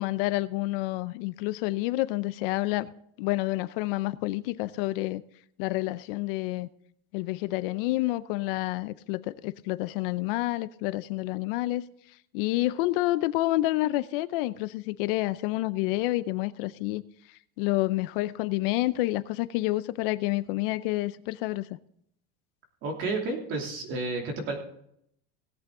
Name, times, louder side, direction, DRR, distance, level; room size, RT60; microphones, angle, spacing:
voice 1, 0.0-2.9 3.2-5.2 5.6-6.7 7.1-11.8 12.3-17.0 17.6-21.7, left 18 dB, 60° left, 0.6 m, -28 dB
voice 2, 22.8-24.6, right 3 dB, 40° right, 2.9 m, -31 dB
17.5 x 8.2 x 3.7 m
cardioid pair, 180°, 31 cm